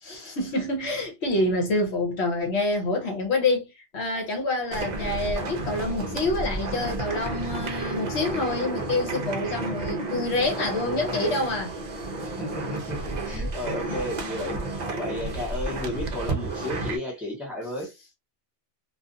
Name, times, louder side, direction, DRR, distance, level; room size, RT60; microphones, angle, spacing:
voice 1, 0.1-11.7, left 2 dB, 65° left, 1.0 m, -27 dB
sound 1, 4.7-17.0, right 2 dB, 50° right, 0.5 m, -31 dB
voice 2, 12.2-17.9, left 1 dB, ahead, 1.0 m, -33 dB
2.4 x 2.4 x 2.5 m
omnidirectional pair, 1.2 m